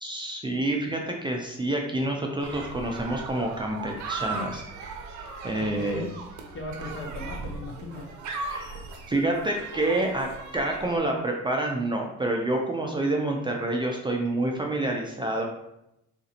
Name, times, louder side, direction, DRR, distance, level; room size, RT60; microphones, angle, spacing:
voice 1, 0.0-4.6 5.4-6.1 8.4-8.7 9.1-15.4, right 1 dB, 15° right, 0 dB, 0.4 m, -28 dB
sound 1, 2.4-11.0, right 4 dB, 70° right, 0.6 m, -38 dB
voice 2, 5.6-6.1 6.5-8.1, left 2 dB, 45° left, 2 dB, 0.7 m, -37 dB
3.9 x 2.5 x 2.7 m, 0.85 s
cardioid pair, 90°, 30 cm